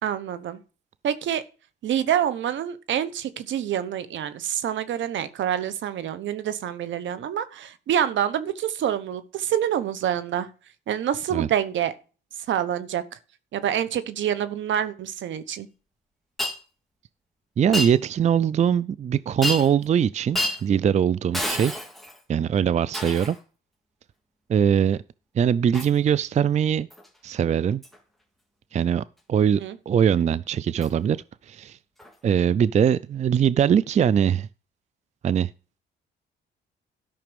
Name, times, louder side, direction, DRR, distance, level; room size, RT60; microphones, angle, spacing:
voice 1, 0.0-0.6 1.0-1.4 1.8-10.5 10.9-11.9 12.5-13.0 13.5-15.7 29.4-29.8, right 10 dB, 70° right, 1.1 m, -27 dB
Shatter, 16.4-16.6 17.7-18.0 19.4-19.8 20.3-20.6 21.3-22.2 22.9-23.4 25.7-26.0 26.9-27.1 27.8-28.0 30.8-30.9 32.0-32.1, left 1 dB, ahead, 2.0 m, -29 dB
voice 2, 17.6-21.8 22.3-23.4 24.5-25.0 25.3-26.9 27.2-27.8 28.7-29.0 29.3-29.6 29.9-31.2 31.4-31.8 32.2-34.5 35.2-35.5, right 8 dB, 35° right, 0.4 m, -21 dB
12.5 x 5.9 x 5.2 m
cardioid pair, 90°, 20 cm